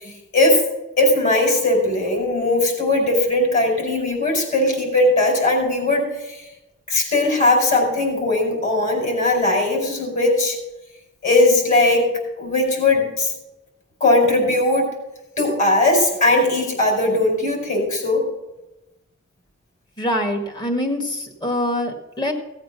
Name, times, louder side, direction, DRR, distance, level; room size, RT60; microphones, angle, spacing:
voice 1, 1.0-6.4 6.9-10.6 11.2-12.1 12.4-13.3 14.0-14.9 15.4-18.3, left 2 dB, 35° left, 2 dB, 4.9 m, -19 dB
voice 2, 20.0-22.3, left 1 dB, 20° left, 3 dB, 1.9 m, -24 dB
17.0 x 8.0 x 6.1 m, 0.96 s
head